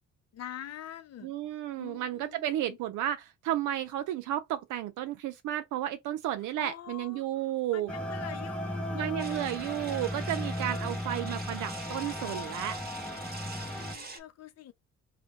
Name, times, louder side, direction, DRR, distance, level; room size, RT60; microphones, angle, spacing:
voice 1, 0.3-1.3 1.8-2.8 6.6-7.3 7.7-9.3 13.6-14.7, left 11 dB, 55° left, 0.6 m, -44 dB
voice 2, 1.2-7.9 8.9-12.8, right 12 dB, 80° right, 0.5 m, -33 dB
sound 1, 7.9-14.0, left 1 dB, 5° left, 0.7 m, -36 dB
sound 2, 9.2-14.2, right 3 dB, 30° right, 1.0 m, -44 dB
3.0 x 2.2 x 3.6 m
cardioid pair, 90°, 30 cm